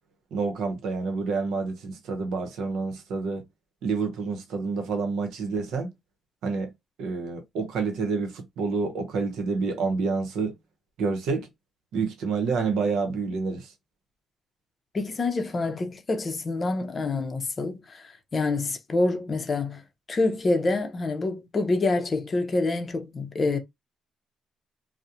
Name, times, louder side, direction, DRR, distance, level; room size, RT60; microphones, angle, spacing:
voice 1, 0.3-3.4 3.8-5.9 6.4-6.7 7.0-10.6 11.0-11.5 11.9-13.7, right 4 dB, 85° right, 0.7 m, -28 dB
voice 2, 14.9-19.8 20.1-23.6, left 3 dB, 35° left, 0.5 m, -27 dB
2.4 x 2.0 x 2.7 m
cardioid pair, 90°, 0 cm